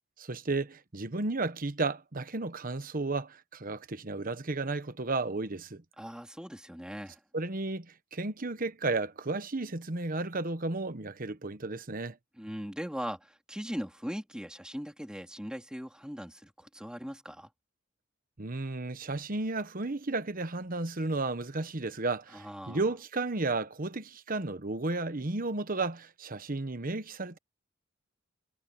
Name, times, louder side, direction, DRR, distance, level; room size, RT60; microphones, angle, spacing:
voice 1, 0.2-5.8 7.3-7.9 8.1-12.2 18.4-27.4, right 3 dB, 45° right, 1.2 m, -33 dB
voice 2, 6.0-7.2 12.4-17.5 22.3-22.8, equal, 5° right, 3.6 m, -40 dB
head